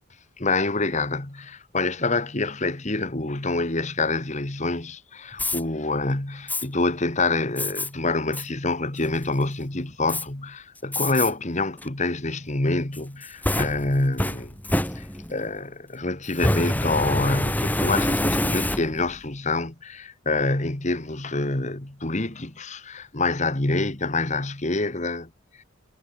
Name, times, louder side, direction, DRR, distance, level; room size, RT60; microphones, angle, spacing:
voice 1, 0.4-14.6 15.0-25.3 25.6-25.7, left 3 dB, 35° left, 1.7 m, -26 dB
Fire, 5.3-5.6 6.5-6.6 7.6-7.9 8.3-8.5 9.0-9.4 10.1-10.2 10.9-11.3 11.8-11.9 12.9-15.4 16.3-19.2, left 1 dB, 10° left, 3.0 m, -26 dB
head